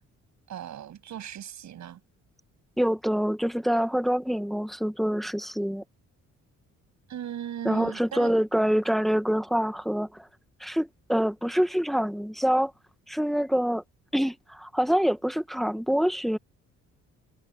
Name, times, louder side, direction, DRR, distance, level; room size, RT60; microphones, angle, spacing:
voice 1, 0.5-2.0 7.1-8.3, right 10 dB, 70° right, 6.7 m, -37 dB
voice 2, 2.8-5.8 7.6-10.3 10.6-12.7 13.1-13.8 14.1-16.4, equal, ahead, 1.0 m, -26 dB
cardioid pair, 90°, 30 cm